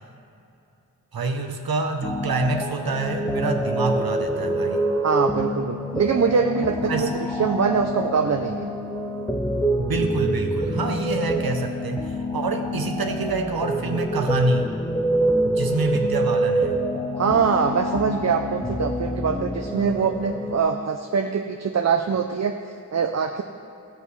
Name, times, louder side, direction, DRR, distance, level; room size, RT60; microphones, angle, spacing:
voice 1, 1.1-4.9 6.8-7.1 9.8-14.7 15.4-16.8, right 3 dB, 85° right, 5 dB, 0.8 m, -27 dB
sound 1, 2.0-20.6, right 1 dB, 10° left, 0.6 m, -26 dB
voice 2, 5.0-8.7 17.2-23.4, right 6 dB, 50° right, 5 dB, 0.5 m, -23 dB
14.5 x 8.3 x 3.2 m, 2.8 s
wide cardioid pair, 70°, 35 cm